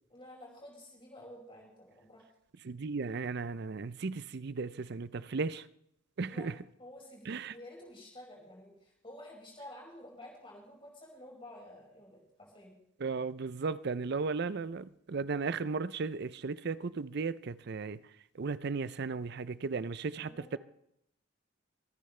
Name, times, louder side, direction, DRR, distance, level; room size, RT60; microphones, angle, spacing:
voice 1, 0.1-2.3 6.3-6.5 6.8-12.7 20.1-20.6, left 1 dB, 25° left, 5.5 m, -51 dB
voice 2, 2.6-5.7 6.2-6.5 7.3-7.5 13.0-18.0 18.3-20.6, right 4 dB, 55° right, 0.5 m, -35 dB
24.5 x 10.0 x 3.3 m
head